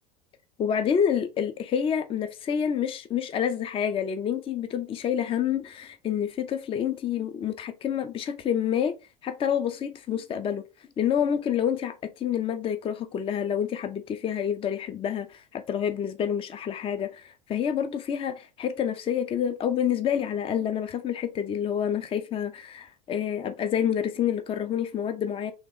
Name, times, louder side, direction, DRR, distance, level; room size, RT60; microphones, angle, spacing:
voice 1, 0.6-8.9 9.2-10.6 11.0-25.5, left 8 dB, 25° left, 0.5 m, -28 dB
3.5 x 3.0 x 3.6 m
hypercardioid pair, 80°, 20 cm